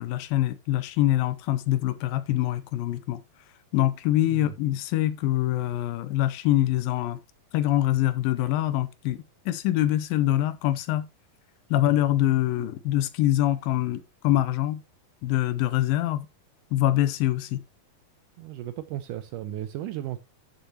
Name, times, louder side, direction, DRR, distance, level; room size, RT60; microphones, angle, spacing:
voice 1, 0.0-3.2 3.7-7.2 7.5-11.1 11.7-14.8 15.2-16.3 16.7-17.6, left 14 dB, 80° left, 2.4 m, -24 dB
voice 2, 18.4-20.2, right 12 dB, 80° right, 1.9 m, -35 dB
13.0 x 6.7 x 2.9 m
omnidirectional pair, 4.2 m